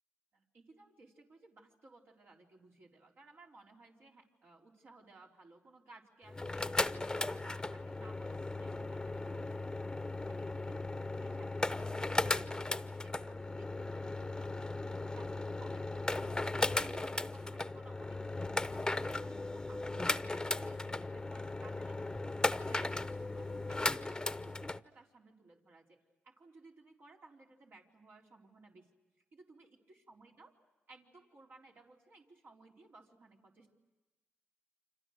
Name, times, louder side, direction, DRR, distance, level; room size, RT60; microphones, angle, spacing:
voice 1, 0.3-9.8 10.1-14.7 15.0-18.5 19.0-23.0 23.3-26.0 26.2-28.9 29.3-30.5 30.9-33.7, right 3 dB, 65° right, -2 dB, 4.1 m, -59 dB
sound 1, 6.3-24.8, left 2 dB, 20° left, 0.8 m, -36 dB
29.5 x 26.0 x 6.6 m, 1.1 s
cardioid pair, 65°, 4 cm